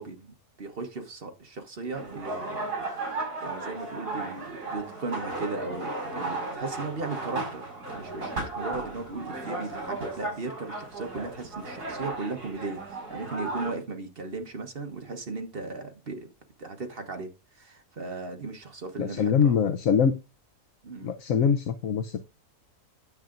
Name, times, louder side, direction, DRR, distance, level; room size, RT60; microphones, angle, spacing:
voice 1, 0.0-3.1 3.4-7.7 7.9-12.8 13.1-16.3 16.6-17.3 17.5-19.6 20.8-21.1, right 3 dB, 40° right, 1.3 m, -37 dB
sound 1, 1.9-13.7, right 2 dB, 55° right, 5.8 m, -35 dB
voice 2, 19.0-20.1 21.0-22.2, left 7 dB, 65° left, 1.0 m, -23 dB
9.6 x 7.4 x 2.5 m
omnidirectional pair, 1.7 m